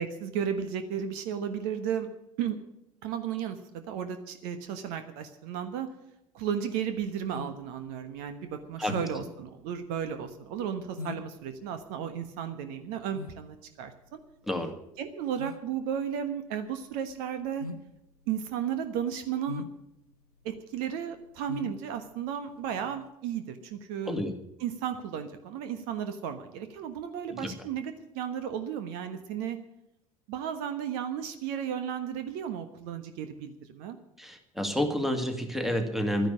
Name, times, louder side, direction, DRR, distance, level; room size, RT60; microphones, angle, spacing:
voice 1, 0.0-2.1 2.4-2.6 3.0-5.9 6.3-14.2 15.0-17.7 18.3-19.6 20.4-24.2 24.6-29.6 30.3-34.0, right 8 dB, 55° right, 9 dB, 1.3 m, -34 dB
sound 1, 6.8-23.1, left 4 dB, 90° left, 0.7 m, -44 dB
voice 2, 8.8-9.2 14.5-14.7 24.1-24.3 27.3-27.5 34.2-36.3, equal, ahead, 6 dB, 2.0 m, -30 dB
11.5 x 10.5 x 8.7 m, 0.85 s
figure-of-eight pair, 70°, 19 cm